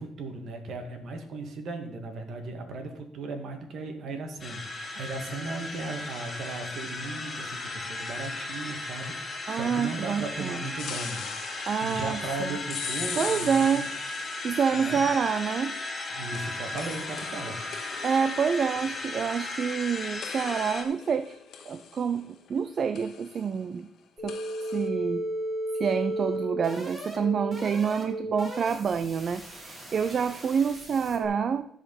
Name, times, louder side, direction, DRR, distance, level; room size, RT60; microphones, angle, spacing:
voice 1, 0.0-11.2 11.5-13.9 14.7-15.0 16.1-17.6, right 3 dB, 70° right, 5 dB, 1.9 m, -37 dB
sound 1, 4.4-20.8, left 2 dB, 35° left, 2.0 m, -36 dB
voice 2, 9.5-10.6 11.7-12.5 13.2-13.9 14.4-15.7 18.0-21.4 21.7-23.9 24.2-24.4 24.7-25.2 25.7-31.7, right 6 dB, 50° right, 11 dB, 0.5 m, -27 dB
sound 2, 10.8-15.0 16.3-19.9 20.2-22.6 22.9-23.5 24.3-24.9, left 7 dB, 70° left, 1.2 m, -41 dB
sound 3, 24.2-31.3, right 1 dB, 30° right, 3.9 m, -35 dB
14.0 x 4.9 x 5.4 m, 0.73 s
cardioid pair, 90°, 0 cm